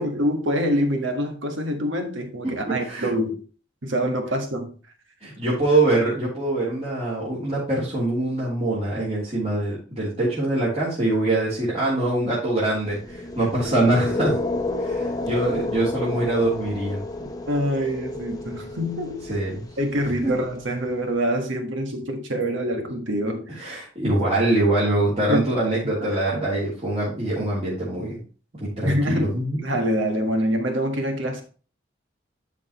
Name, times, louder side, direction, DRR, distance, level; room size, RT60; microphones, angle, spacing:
voice 1, 0.0-3.4 3.8-4.7 17.5-19.3 19.8-23.6 24.0-24.2 25.3-25.5 26.3-26.4 28.8-31.4, equal, 75° right, 1.5 m, -25 dB
voice 2, 2.4-3.1 5.2-14.3 14.8-17.0 19.3-19.7 23.6-28.2 28.6-29.6, right 2 dB, 35° right, 3.1 m, -24 dB
sound 1, 12.8-20.9, left 2 dB, 20° left, 0.8 m, -31 dB
12.0 x 5.0 x 3.0 m
head